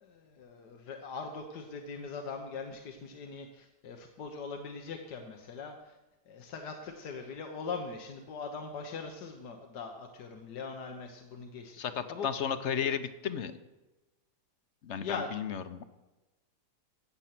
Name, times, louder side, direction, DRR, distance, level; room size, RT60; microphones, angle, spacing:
voice 1, 0.0-6.0 6.3-11.8 12.1-12.3 15.0-15.4 15.7-15.8, left 4 dB, 85° left, 4 dB, 1.7 m, -41 dB
voice 2, 11.8-13.5 14.8-15.8, left 8 dB, 55° left, 11 dB, 1.0 m, -34 dB
16.0 x 8.1 x 5.9 m, 1.1 s
omnidirectional pair, 1.7 m